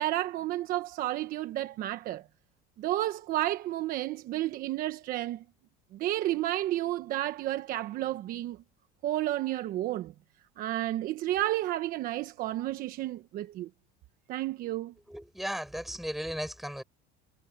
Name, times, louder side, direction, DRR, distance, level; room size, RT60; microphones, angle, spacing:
voice 1, 0.0-2.2 2.8-5.4 5.9-8.6 9.0-10.1 10.6-13.7 14.3-14.9, right 14 dB, 50° right, 1.2 m, -31 dB
voice 2, 15.1-16.8, equal, ahead, 7.2 m, -36 dB
cardioid pair, 145°, 19 cm